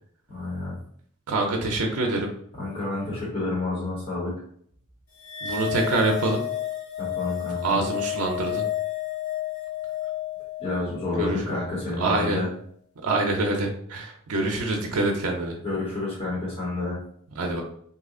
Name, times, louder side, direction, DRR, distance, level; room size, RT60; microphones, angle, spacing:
voice 1, 0.3-0.8 2.6-4.3 7.0-7.8 10.6-12.5 15.6-17.0, left 2 dB, 25° left, -7 dB, 1.2 m, -29 dB
voice 2, 1.3-2.3 5.4-6.4 7.6-8.6 11.2-11.5 12.0-12.4 13.0-15.6 17.4-17.6, right 2 dB, 85° right, 1 dB, 0.6 m, -25 dB
sound 1, 5.2-11.8, left 12 dB, 90° left, 1.3 m, -31 dB
2.8 x 2.4 x 3.6 m, 0.63 s
head